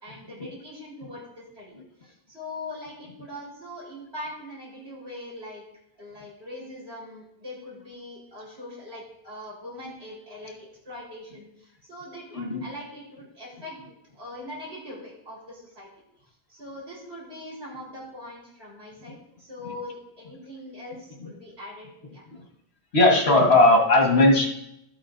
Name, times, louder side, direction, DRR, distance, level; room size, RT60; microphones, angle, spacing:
voice 1, 0.0-1.7 2.0-5.6 6.0-10.5 10.8-13.8 14.1-15.9 16.5-22.2, left 1 dB, 75° right, -6 dB, 4.5 m, -41 dB
voice 2, 22.9-24.5, left 2 dB, 85° left, 0 dB, 1.7 m, -18 dB
12.0 x 8.7 x 2.6 m, 0.82 s
omnidirectional pair, 1.1 m